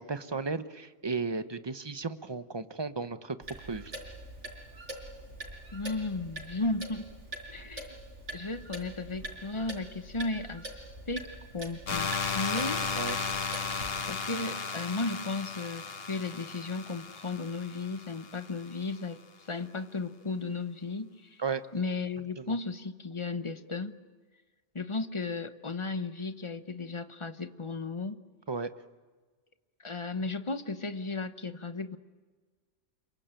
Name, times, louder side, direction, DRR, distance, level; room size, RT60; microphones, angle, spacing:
voice 1, 0.0-3.4 3.7-3.9 12.9-13.2 21.4-21.6 22.4-22.5 28.5-28.7, right 4 dB, 25° right, 11 dB, 0.9 m, -34 dB
Clock, 3.4-14.0, right 1 dB, 80° right, 5.5 m, -44 dB
voice 2, 5.7-7.1 7.5-8.0 8.3-10.7 11.1-12.9 14.1-19.2 19.5-21.4 21.7-23.9 24.7-28.2 29.8-32.0, left 3 dB, 25° left, 10 dB, 1.0 m, -35 dB
sound 1, 11.9-18.7, left 5 dB, 55° left, 1.5 m, -35 dB
27.0 x 23.0 x 9.1 m, 1.4 s
omnidirectional pair, 1.2 m